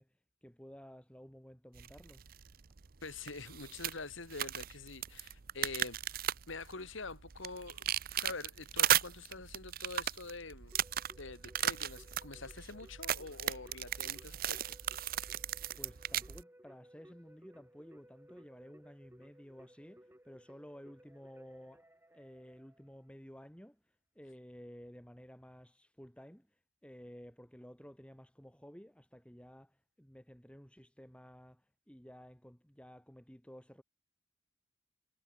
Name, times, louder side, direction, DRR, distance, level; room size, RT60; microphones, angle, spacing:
voice 1, 0.0-2.2 15.8-21.9 22.1-33.8, equal, 5° left, 2.8 m, -54 dB
sound 1, 1.7-16.4, right 11 dB, 45° right, 0.6 m, -37 dB
voice 2, 3.0-10.8 11.1-14.8, left 3 dB, 70° left, 2.2 m, -46 dB
Keyboard (musical), 10.7-23.2, equal, 10° right, 7.8 m, -61 dB
head